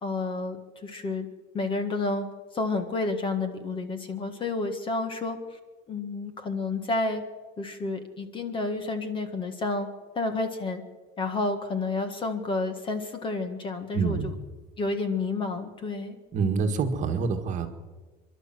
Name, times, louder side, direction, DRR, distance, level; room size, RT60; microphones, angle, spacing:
voice 1, 0.0-1.3 1.5-2.3 2.5-5.6 5.9-7.2 7.6-9.9 10.1-10.8 11.2-14.3 14.8-16.2, left 3 dB, 25° left, 8 dB, 1.7 m, -30 dB
voice 2, 13.9-14.4 16.3-17.7, right 5 dB, 35° right, 5 dB, 2.0 m, -26 dB
29.0 x 12.0 x 7.8 m, 1.3 s
cardioid pair, 165°, 21 cm